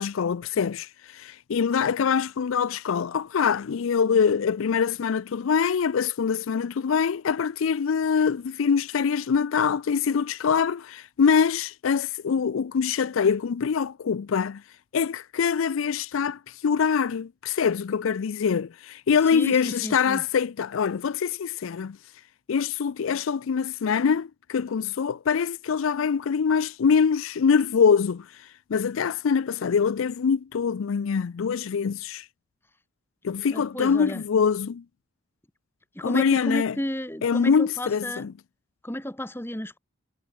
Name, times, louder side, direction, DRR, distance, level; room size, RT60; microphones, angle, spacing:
voice 1, 0.0-14.6 14.9-22.0 22.5-32.3 33.2-34.8 36.0-36.8 37.2-38.3, left 6 dB, 75° left, 0.4 m, -24 dB
voice 2, 19.3-20.2 33.5-34.2 36.0-38.3 38.8-39.8, equal, 10° left, 2.1 m, -32 dB
head